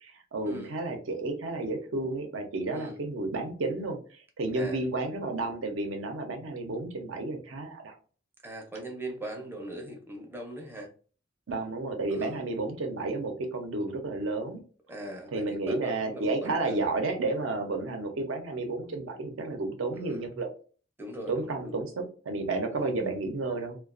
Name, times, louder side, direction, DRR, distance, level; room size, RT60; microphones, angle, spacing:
voice 1, 0.0-7.9 11.5-14.6 15.3-20.5 21.3-23.8, right 2 dB, 75° right, 4 dB, 0.6 m, -32 dB
voice 2, 8.4-10.9 12.1-12.4 14.9-16.8 20.0-20.3 21.0-21.7 22.7-22.9, right 1 dB, 10° right, 1 dB, 0.5 m, -40 dB
2.3 x 2.2 x 2.4 m, 0.40 s
head